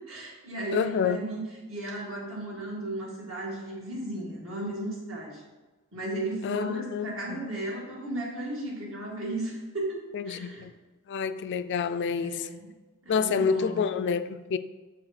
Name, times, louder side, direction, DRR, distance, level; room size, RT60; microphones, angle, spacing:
voice 1, 0.1-1.4 1.7-5.4 5.9-10.7 12.2-12.7 13.0-14.0, right 1 dB, 65° right, 2.2 m, -35 dB
voice 2, 0.7-1.2 6.4-7.4 10.1-10.7 11.1-12.5 13.1-14.6, left 6 dB, 55° left, 0.3 m, -28 dB
7.2 x 4.9 x 4.2 m
head